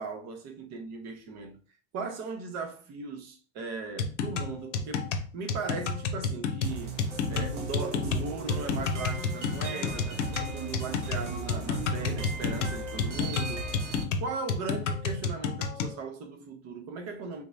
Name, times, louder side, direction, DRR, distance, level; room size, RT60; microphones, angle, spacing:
voice 1, 0.0-1.6 1.9-7.0 7.3-13.9 14.2-17.4, right 4 dB, 45° right, 1.0 m, -38 dB
sound 1, 4.0-16.0, left 5 dB, 80° left, 0.6 m, -30 dB
sound 2, 6.6-14.0, right 4 dB, 85° right, 0.9 m, -37 dB
3.7 x 3.0 x 2.6 m
hypercardioid pair, 80°, 35 cm